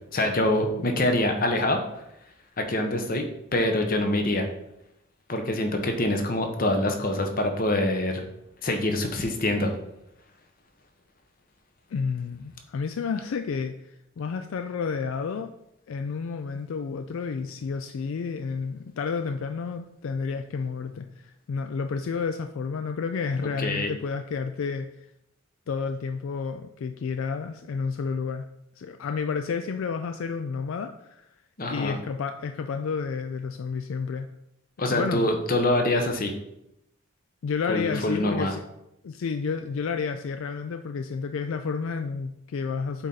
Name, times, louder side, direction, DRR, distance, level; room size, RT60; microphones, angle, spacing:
voice 1, 0.1-1.8 2.6-3.3 3.5-4.5 5.3-8.2 8.6-9.7 23.6-23.9 31.6-32.0 34.8-36.3 37.7-38.5, left 1 dB, 40° left, 5 dB, 0.9 m, -25 dB
voice 2, 11.9-15.5 15.9-25.1 25.7-28.5 28.8-31.3 31.7-34.3 34.8-35.3 37.4-38.6 39.0-43.1, left 5 dB, 65° left, 7 dB, 0.3 m, -31 dB
8.0 x 4.2 x 3.9 m, 0.82 s
head